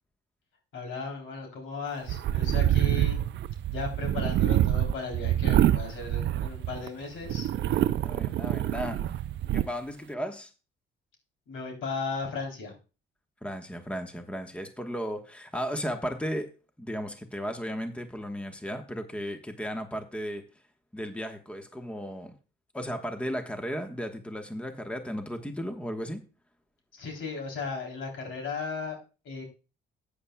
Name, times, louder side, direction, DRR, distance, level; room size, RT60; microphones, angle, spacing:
voice 1, 0.7-3.2 3.7-7.5 11.5-12.7 26.9-29.0 29.2-29.4, left 4 dB, 80° left, 2 dB, 3.3 m, -36 dB
sound 1, 2.1-6.9 7.3-9.7, right 12 dB, 65° right, 0.5 m, -26 dB
voice 2, 7.7-9.2 9.5-10.5 13.4-16.5 16.8-20.4 20.9-22.4 22.7-26.2, equal, 5° left, 5 dB, 1.2 m, -35 dB
13.5 x 8.5 x 2.3 m, 0.32 s
cardioid pair, 90°, 20 cm